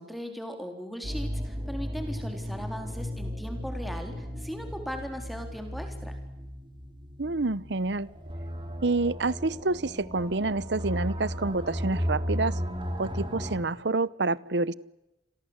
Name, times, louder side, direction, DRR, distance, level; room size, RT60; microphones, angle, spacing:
voice 1, 0.0-6.2, equal, ahead, 4 dB, 3.8 m, -38 dB
sound 1, 1.0-13.6, equal, 25° right, 4.2 m, -35 dB
voice 2, 7.2-8.1 8.8-12.6 13.0-14.7, right 3 dB, 65° right, 20 dB, 0.9 m, -28 dB
29.5 x 23.0 x 8.1 m, 0.95 s
head